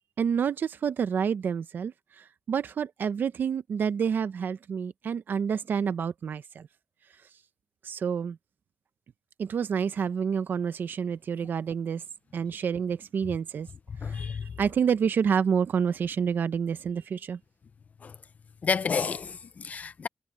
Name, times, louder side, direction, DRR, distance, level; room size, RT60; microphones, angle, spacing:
voice 1, 0.2-6.7 7.8-8.4 9.4-12.0 12.3-13.7 14.1-14.3 14.6-17.4, right 7 dB, 85° right, 0.6 m, -28 dB
voice 2, 13.9-14.5 18.0-18.2 18.6-20.1, left 5 dB, 50° left, 0.5 m, -31 dB
wide cardioid pair, 155°, 3 cm